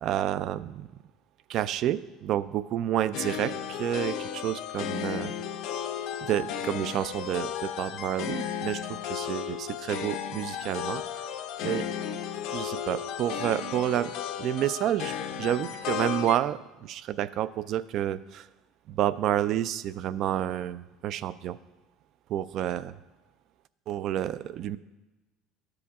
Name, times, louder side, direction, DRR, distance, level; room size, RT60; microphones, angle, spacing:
voice 1, 0.0-0.9 1.5-5.3 6.2-11.3 11.6-11.9 12.5-14.1 14.4-18.5 18.9-21.6 22.3-23.0 23.9-24.8, right 11 dB, 50° right, 16 dB, 0.3 m, -29 dB
sound 1, 3.1-16.4, left 8 dB, 65° left, 0.5 m, -34 dB
13.0 x 4.9 x 3.5 m, 1.1 s
cardioid pair, 130°, 0 cm